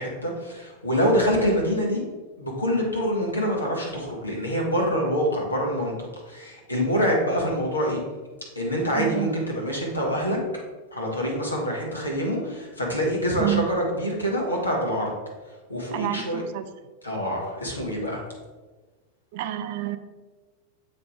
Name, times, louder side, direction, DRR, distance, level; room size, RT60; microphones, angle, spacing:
voice 1, 0.0-2.0 2.4-8.0 8.5-10.4 10.9-15.1 15.4-16.4 17.0-18.2, equal, 80° left, -2 dB, 1.6 m, -26 dB
voice 2, 8.9-9.3 13.4-13.7 15.9-16.7 19.3-20.0, right 13 dB, 50° right, 10 dB, 0.4 m, -28 dB
7.4 x 3.3 x 4.7 m, 1.3 s
figure-of-eight pair, 90°, 0 cm